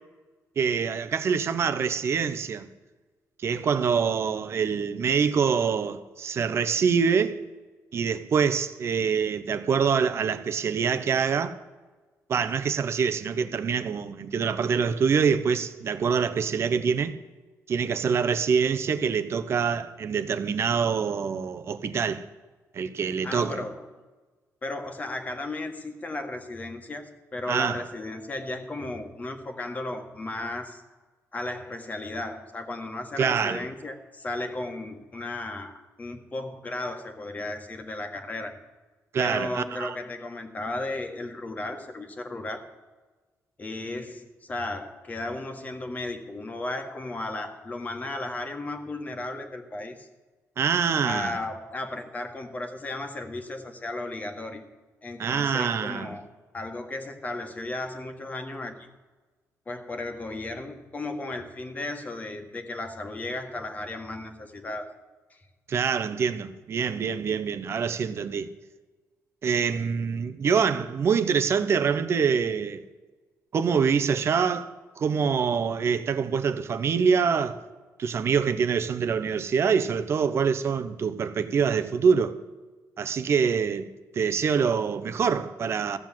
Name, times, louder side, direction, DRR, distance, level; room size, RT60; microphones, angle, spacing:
voice 1, 0.6-2.7 3.4-7.4 7.9-11.6 12.3-17.1 17.7-22.2 22.7-23.6 27.5-27.8 33.2-33.6 39.1-39.9 50.6-51.4 55.2-56.1 65.7-68.5 69.4-72.8 73.5-77.6 78.0-82.4 83.0-83.9 84.1-86.0, right 6 dB, 50° right, 0.8 m, -25 dB
voice 2, 23.2-23.9 24.6-30.8 31.3-38.6 39.2-42.6 43.6-50.1 51.0-54.6 55.0-56.3 56.5-58.9 59.6-65.0 65.3-65.4, left 2 dB, 30° left, 1.6 m, -35 dB
15.0 x 7.6 x 7.5 m
cardioid pair, 110°, 6 cm